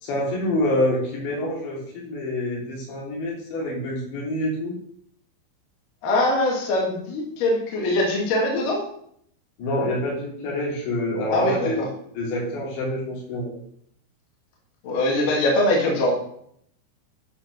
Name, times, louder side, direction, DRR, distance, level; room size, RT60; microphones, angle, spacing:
voice 1, 0.0-4.7 9.6-11.8 12.2-13.5, left 1 dB, 85° left, -3 dB, 5.4 m, -26 dB
voice 2, 6.0-8.8 11.3-11.9 14.8-16.1, left 1 dB, 55° left, -2 dB, 3.7 m, -22 dB
13.0 x 5.2 x 6.2 m, 0.68 s
omnidirectional pair, 5.0 m